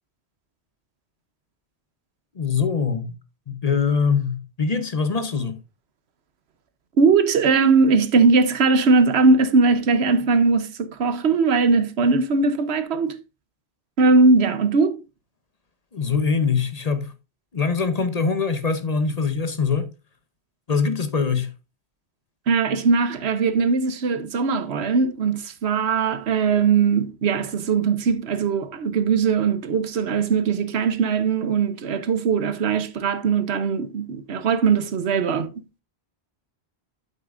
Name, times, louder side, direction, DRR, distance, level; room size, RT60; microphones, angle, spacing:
voice 1, 2.4-3.1 3.5-5.6 15.9-17.1 17.5-19.9 20.7-21.5, left 5 dB, 40° left, 0.9 m, -23 dB
voice 2, 7.0-13.2 14.0-15.0 22.5-35.5, right 4 dB, 85° right, 1.1 m, -20 dB
8.3 x 8.1 x 2.5 m
omnidirectional pair, 1.1 m